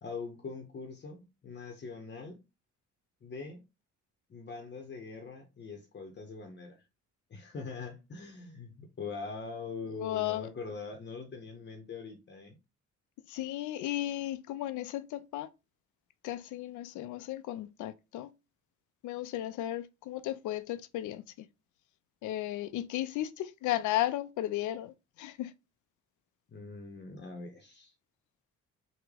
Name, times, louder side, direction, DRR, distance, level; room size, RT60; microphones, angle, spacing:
voice 1, 0.0-2.4 3.2-3.6 4.3-6.8 7.3-12.6 26.5-27.9, left 4 dB, 35° left, 0.8 m, -43 dB
voice 2, 9.9-10.5 13.3-15.5 16.2-18.3 19.0-21.5 22.2-25.5, left 14 dB, 80° left, 0.5 m, -35 dB
3.5 x 2.2 x 3.2 m
cardioid pair, 90°, 30 cm